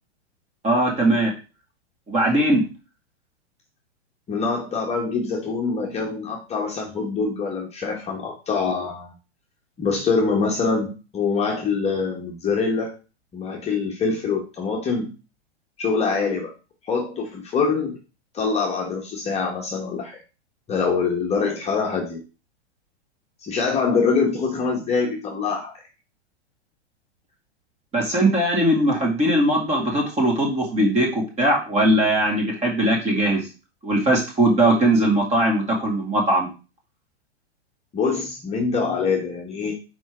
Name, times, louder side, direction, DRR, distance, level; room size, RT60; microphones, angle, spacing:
voice 1, 0.6-1.3 2.1-2.6 27.9-33.4 33.8-36.5, right 1 dB, 20° right, -1 dB, 2.1 m, -20 dB
voice 2, 4.3-9.1 9.8-12.9 13.3-15.1 15.8-16.5 16.8-18.0 18.3-20.2 20.7-22.2 23.4-25.7 37.9-39.7, left 4 dB, 20° left, -1 dB, 1.1 m, -24 dB
4.7 x 4.2 x 4.8 m, 0.32 s
hypercardioid pair, 125°, 34 cm